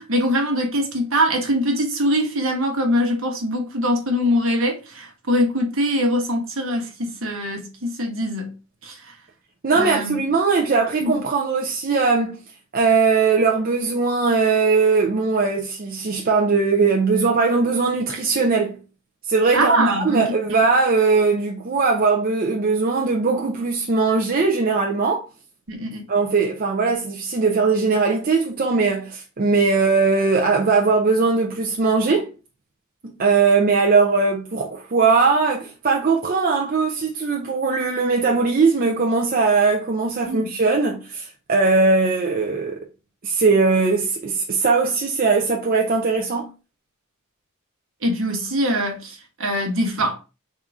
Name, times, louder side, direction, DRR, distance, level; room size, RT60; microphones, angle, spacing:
voice 1, 0.0-8.5 8.8-9.1 9.7-10.2 11.0-11.1 19.5-20.6 25.7-26.1 40.2-40.5 48.0-50.2, equal, 70° right, 1.2 m, -23 dB
voice 2, 9.6-12.4 12.7-18.8 19.3-25.2 26.1-32.3 33.0-42.8 43.2-46.5, right 4 dB, 45° right, 0.6 m, -20 dB
3.6 x 2.8 x 4.8 m
head